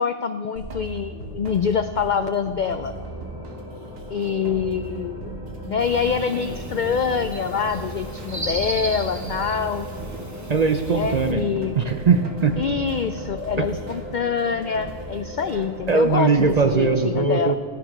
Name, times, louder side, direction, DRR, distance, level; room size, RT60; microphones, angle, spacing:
voice 1, 0.0-2.9 4.1-9.9 10.9-11.8 12.6-17.5, left 6 dB, 75° left, 10 dB, 0.4 m, -25 dB
sound 1, 0.6-16.6, right 3 dB, 90° right, 1.6 m, -39 dB
sound 2, 2.6-16.9, equal, 35° left, 2.8 m, -39 dB
sound 3, 5.8-11.3, right 1 dB, 15° right, 1.0 m, -35 dB
voice 2, 10.5-11.4 11.8-12.6 13.6-13.7 15.9-17.5, right 4 dB, 45° right, 7 dB, 0.6 m, -20 dB
15.5 x 10.0 x 5.3 m, 2.3 s
omnidirectional pair, 1.3 m